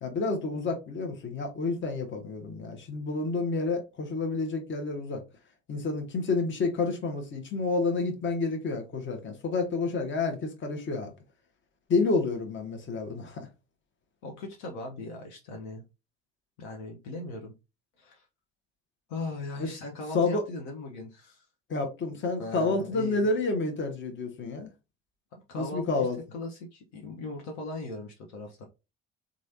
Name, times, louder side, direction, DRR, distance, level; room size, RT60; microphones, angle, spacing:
voice 1, 0.0-5.2 5.7-11.1 11.9-13.5 19.6-19.7 20.1-20.4 21.7-24.7 25.5-26.2, left 3 dB, 35° left, 1.0 m, -29 dB
voice 2, 14.2-15.8 16.6-17.5 18.0-18.2 19.1-21.4 22.4-23.3 25.5-28.6, left 2 dB, 60° left, 0.9 m, -39 dB
3.1 x 2.5 x 2.7 m
hypercardioid pair, 60°, 33 cm